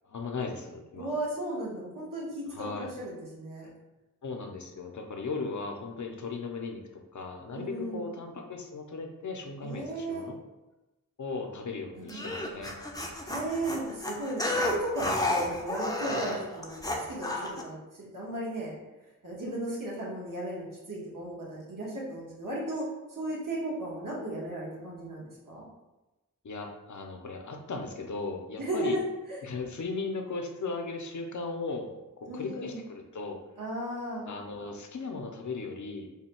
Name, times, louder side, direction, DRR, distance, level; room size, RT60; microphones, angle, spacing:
voice 1, 0.0-1.1 2.5-2.9 4.2-10.4 11.2-12.7 26.4-29.0 29.4-33.4 34.3-36.1, left 3 dB, 60° left, 3 dB, 0.6 m, -37 dB
voice 2, 1.0-3.7 7.5-8.1 9.6-10.2 11.9-12.2 13.2-18.7 19.2-22.8 23.2-25.6 28.6-29.0 29.3-29.4 32.3-32.8 33.6-34.3, right 1 dB, 70° right, -5 dB, 1.3 m, -35 dB
sound 1, 12.1-17.6, left 1 dB, 10° left, 0.5 m, -31 dB
3.5 x 2.2 x 4.3 m, 1.0 s
wide cardioid pair, 60°, 34 cm